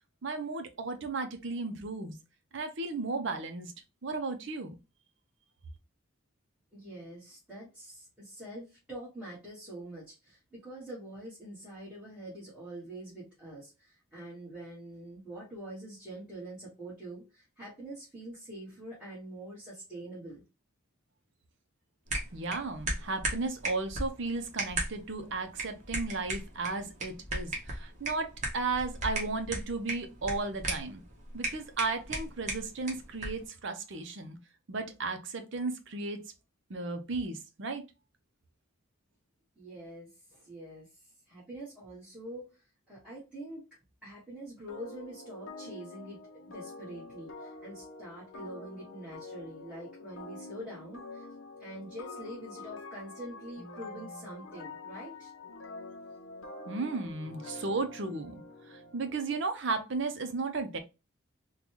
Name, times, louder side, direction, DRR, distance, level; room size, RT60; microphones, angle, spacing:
voice 1, 0.2-2.2 2.5-3.7 4.0-4.7 22.3-31.0 31.3-34.4 34.7-36.2 36.7-37.8 56.7-58.4 58.7-60.8, right 3 dB, 60° right, 0.6 m, -34 dB
voice 2, 6.7-20.4 39.6-40.9 41.3-42.5 42.9-43.7 44.0-51.3 51.6-55.3, right 1 dB, 5° right, 1.4 m, -45 dB
sound 1, 22.1-33.5, right 2 dB, 35° right, 1.0 m, -37 dB
sound 2, 44.7-59.3, left 3 dB, 65° left, 0.6 m, -46 dB
3.8 x 2.3 x 2.9 m
head